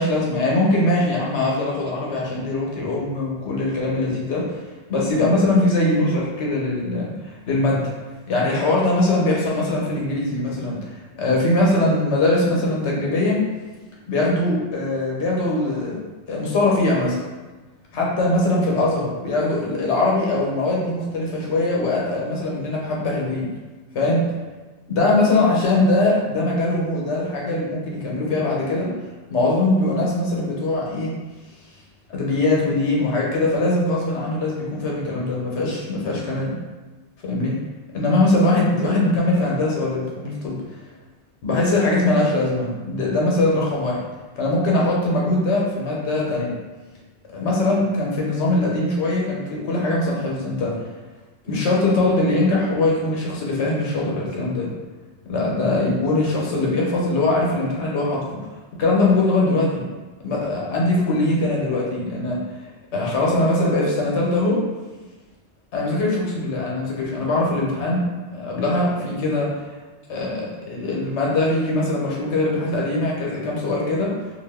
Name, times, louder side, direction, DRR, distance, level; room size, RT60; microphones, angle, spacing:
voice 1, 0.0-4.6 4.9-7.9 8.3-13.4 14.1-16.0 16.3-17.2 17.9-23.5 23.9-24.2 24.9-28.9 29.3-31.1 32.1-36.5 37.2-37.6 37.9-40.6 41.4-44.0 44.4-46.5 47.3-50.8 51.4-54.7 55.2-58.4 58.8-59.8 60.2-62.4 62.9-64.6 65.7-68.1 68.3-69.6 70.1-74.1, left 2 dB, 80° left, -3 dB, 1.1 m, -21 dB
2.6 x 2.4 x 3.4 m, 1.2 s
omnidirectional pair, 1.2 m